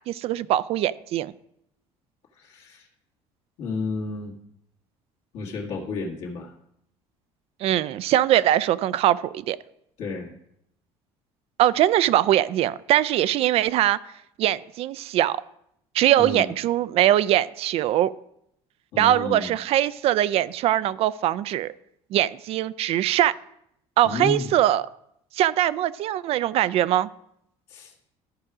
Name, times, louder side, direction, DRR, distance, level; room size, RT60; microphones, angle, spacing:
voice 1, 0.1-1.3 7.6-9.6 11.6-14.0 14.4-15.4 15.9-18.1 19.0-21.7 22.1-23.3 24.0-24.9 25.3-27.1, right 12 dB, 55° right, 16 dB, 0.3 m, -22 dB
voice 2, 2.3-2.9 3.6-4.3 5.3-6.5 10.0-10.3 16.2-16.5 18.9-19.5 24.0-24.5 27.7-27.9, left 3 dB, 70° left, -2 dB, 1.9 m, -31 dB
13.5 x 4.9 x 4.8 m, 0.76 s
cardioid pair, 120°, 12 cm